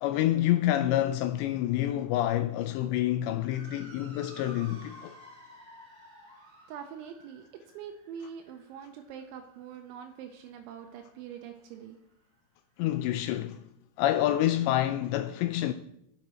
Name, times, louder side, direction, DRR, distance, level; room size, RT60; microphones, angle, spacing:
voice 1, 0.0-5.1 12.8-13.6 14.0-15.7, left 13 dB, 85° left, 2.5 m, -27 dB
Motor vehicle (road) / Siren, 3.2-11.8, right 1 dB, 25° right, 2.8 m, -53 dB
voice 2, 6.7-7.4 7.7-12.0, right 8 dB, 85° right, 3.1 m, -44 dB
11.0 x 9.1 x 4.4 m
omnidirectional pair, 5.4 m